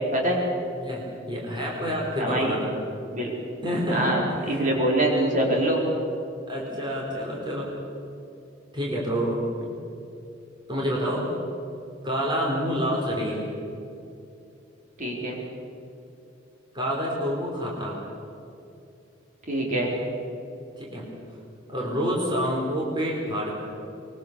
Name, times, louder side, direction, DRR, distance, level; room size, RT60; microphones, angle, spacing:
voice 1, 0.1-0.4 2.2-2.5 3.1-3.3 3.9-4.2 4.5-5.8 15.0-15.4 19.5-19.9, right 1 dB, 40° right, -2 dB, 4.7 m, -24 dB
voice 2, 0.8-2.7 3.6-4.7 6.5-7.7 8.7-9.4 10.7-11.3 12.0-13.4 16.7-18.0 20.8-21.1 21.7-23.5, equal, 25° right, -3 dB, 4.5 m, -28 dB
24.0 x 23.0 x 7.0 m, 2.7 s
head